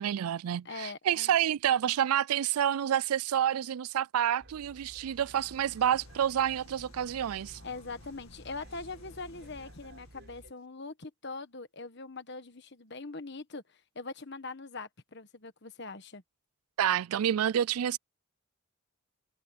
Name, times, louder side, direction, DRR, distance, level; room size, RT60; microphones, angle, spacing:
voice 1, 0.0-7.6 16.8-18.0, right 10 dB, 90° right, 0.4 m, -28 dB
voice 2, 0.6-1.4 7.6-16.2, left 3 dB, 50° left, 1.4 m, -42 dB
sound 1, 4.4-10.5, right 1 dB, 50° right, 4.9 m, -54 dB
sound 2, 4.8-10.5, left 2 dB, 75° left, 2.0 m, -56 dB
head